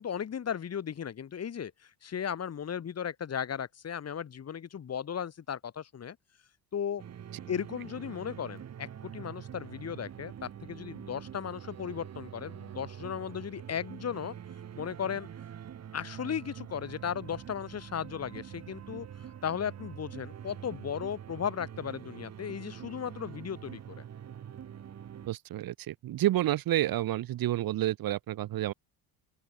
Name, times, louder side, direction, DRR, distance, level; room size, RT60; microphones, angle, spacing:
voice 1, 0.0-6.2 6.7-7.0 7.4-14.4 14.8-15.3 15.9-19.1 19.4-24.0, left 8 dB, 35° left, 3.8 m, -36 dB
sound 1, 7.0-25.3, right 9 dB, 40° right, 2.1 m, -45 dB
voice 2, 25.3-28.7, right 14 dB, 55° right, 1.7 m, -29 dB
open air
cardioid pair, 120°, 42 cm